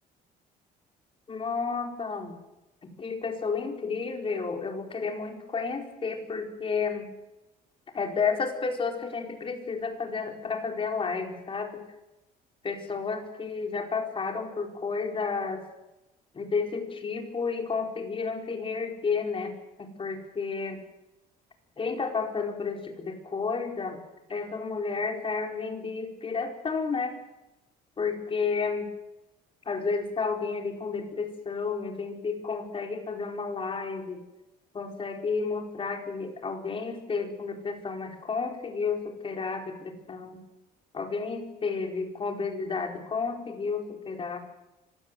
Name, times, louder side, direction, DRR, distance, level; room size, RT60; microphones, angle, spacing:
voice 1, 1.3-2.4 2.8-7.1 7.9-11.8 12.6-15.7 16.3-20.8 21.8-24.0 24.3-27.2 28.0-28.9 29.7-34.2 34.7-40.4 40.9-44.4, left 5 dB, 30° left, 4 dB, 4.5 m, -31 dB
25.0 x 16.5 x 8.0 m, 0.99 s
cardioid pair, 110°, 17 cm